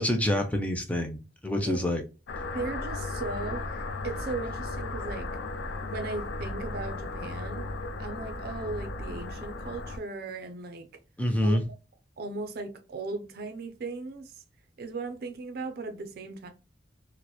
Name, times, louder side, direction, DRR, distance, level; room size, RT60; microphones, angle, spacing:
voice 1, 0.0-2.0 11.2-11.6, left 1 dB, 10° left, 0.4 m, -27 dB
sound 1, 2.3-10.0, left 2 dB, 75° left, 0.4 m, -35 dB
voice 2, 2.4-5.3 5.8-7.7 8.0-10.9 11.4-11.6 12.2-14.4 14.8-16.5, right 3 dB, 60° right, 0.4 m, -37 dB
2.8 x 2.0 x 2.2 m
head